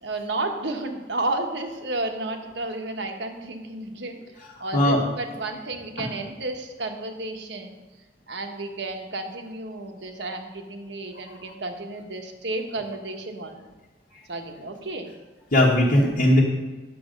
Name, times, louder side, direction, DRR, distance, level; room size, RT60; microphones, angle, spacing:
voice 1, 0.0-4.2 4.6-7.8 8.3-13.6 14.3-15.1, right 2 dB, 70° right, 4 dB, 1.3 m, -32 dB
voice 2, 4.6-5.0 6.0-6.1 15.5-16.4, left 1 dB, 50° left, -4 dB, 1.3 m, -19 dB
9.7 x 7.7 x 5.3 m, 1.2 s
head